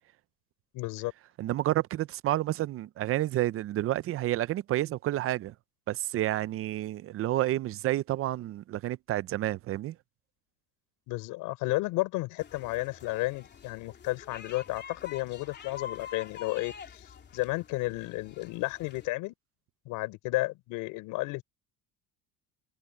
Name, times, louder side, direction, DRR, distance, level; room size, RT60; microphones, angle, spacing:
voice 1, 0.7-1.1 11.1-19.3 19.8-21.4, left 21 dB, 75° left, 4.6 m, -32 dB
voice 2, 1.4-5.5 5.9-10.0, right 14 dB, 45° right, 0.5 m, -30 dB
sound 1, 12.4-19.1, left 8 dB, 30° left, 3.2 m, -47 dB
cardioid pair, 135°, 33 cm